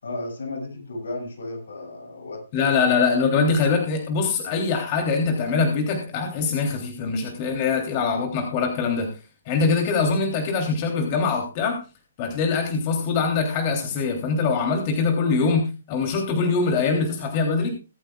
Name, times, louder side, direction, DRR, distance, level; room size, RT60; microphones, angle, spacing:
voice 1, 0.0-2.8, left 2 dB, 80° left, 1 dB, 7.1 m, -34 dB
voice 2, 2.5-9.1 9.5-11.8 12.2-17.7, left 4 dB, 35° left, 2 dB, 3.2 m, -23 dB
23.5 x 9.1 x 2.4 m, 0.31 s
hypercardioid pair, 140°, 0 cm